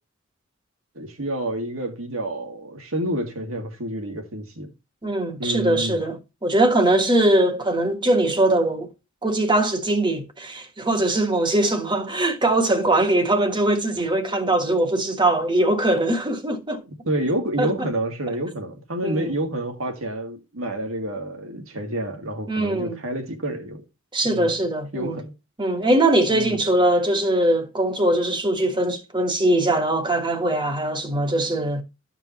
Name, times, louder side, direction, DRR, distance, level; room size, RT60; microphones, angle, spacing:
voice 1, 1.0-4.7 5.4-6.0 16.9-23.8 24.2-24.6 24.9-25.3 26.3-26.6, right 1 dB, 80° right, 2.0 m, -29 dB
voice 2, 5.0-8.9 9.2-16.8 17.6-17.9 19.0-19.3 22.5-23.0 24.1-25.2 25.6-31.8, right 1 dB, 25° right, 1.4 m, -21 dB
13.5 x 5.2 x 3.0 m
head